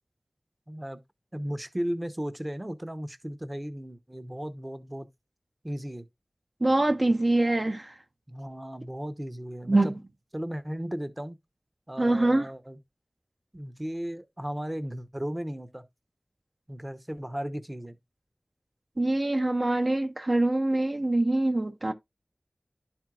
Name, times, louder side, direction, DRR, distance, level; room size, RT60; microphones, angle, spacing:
voice 1, 0.7-1.0 1.3-5.1 5.6-6.1 8.3-9.9 10.3-11.4 11.9-12.8 13.5-15.8 16.7-18.0, equal, 25° right, 0.8 m, -35 dB
voice 2, 6.6-7.9 9.7-10.0 12.0-12.5 19.0-21.9, right 2 dB, 55° right, 0.7 m, -24 dB
11.5 x 4.4 x 2.4 m
wide cardioid pair, 40°, 0 cm